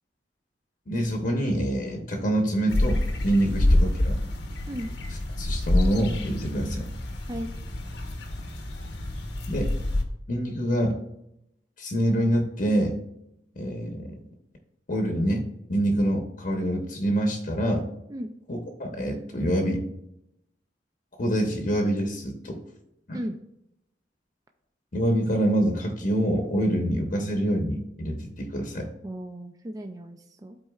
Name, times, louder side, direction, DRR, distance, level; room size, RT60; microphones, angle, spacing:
voice 1, 0.9-4.2 5.4-6.9 9.5-9.7 10.3-11.0 11.8-13.0 13.6-14.2 14.9-17.9 18.5-19.8 21.2-22.6 23.1-23.2 24.9-28.9, right 1 dB, 45° left, 3 dB, 0.9 m, -26 dB
sound 1, 2.7-10.0, left 1 dB, 70° left, 0.9 m, -27 dB
voice 2, 29.0-30.6, equal, 20° right, 5 dB, 0.4 m, -35 dB
13.0 x 4.3 x 2.4 m, 0.81 s
head